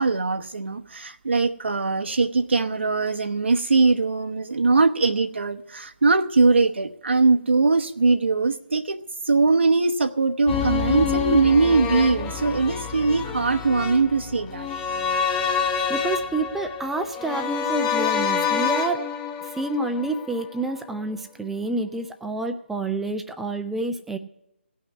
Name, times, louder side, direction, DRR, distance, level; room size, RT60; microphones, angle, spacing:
voice 1, 0.0-9.0 9.2-14.7, right 3 dB, 70° right, 4 dB, 0.9 m, -21 dB
sound 1, 10.5-20.6 20.9-21.0, left 6 dB, 15° left, 1.0 m, -27 dB
voice 2, 15.9-19.0 19.4-24.2, right 2 dB, 5° right, 7 dB, 0.5 m, -28 dB
17.0 x 5.8 x 9.5 m, 0.82 s
figure-of-eight pair, 150°, 6 cm